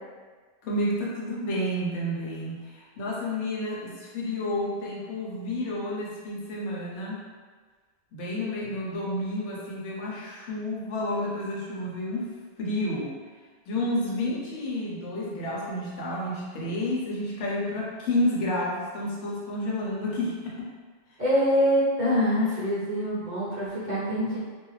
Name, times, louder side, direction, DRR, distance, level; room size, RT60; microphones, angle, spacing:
voice 1, 0.6-7.2 8.1-13.2 13.7-20.7, left 1 dB, 75° left, -4 dB, 0.9 m, -30 dB
voice 2, 21.2-24.4, equal, 40° right, -10 dB, 1.0 m, -24 dB
2.5 x 2.3 x 3.1 m, 1.5 s
omnidirectional pair, 1.3 m